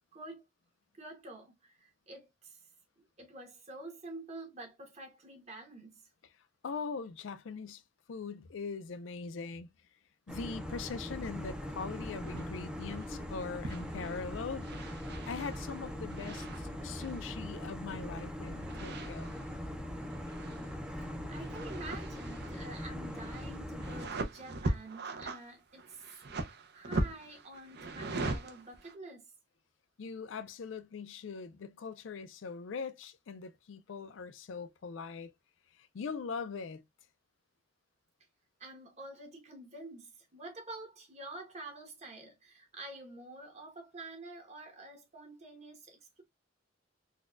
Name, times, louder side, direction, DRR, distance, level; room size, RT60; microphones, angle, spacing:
voice 1, 0.1-0.4 0.9-2.6 3.2-6.0 20.9-26.0 26.7-29.3 38.6-46.2, right 2 dB, 35° right, 1.2 m, -48 dB
voice 2, 6.6-7.8 8.1-9.7 10.3-19.4 30.0-35.3 35.8-36.8, left 5 dB, 80° left, 0.4 m, -41 dB
sound 1, 10.3-24.1, equal, 5° right, 0.4 m, -41 dB
sound 2, 12.2-12.5 12.8-13.2 13.6-14.2 14.6-17.3 18.5-19.6 19.9-20.9 21.2-28.9, right 2 dB, 60° right, 0.6 m, -40 dB
4.0 x 2.3 x 2.4 m
head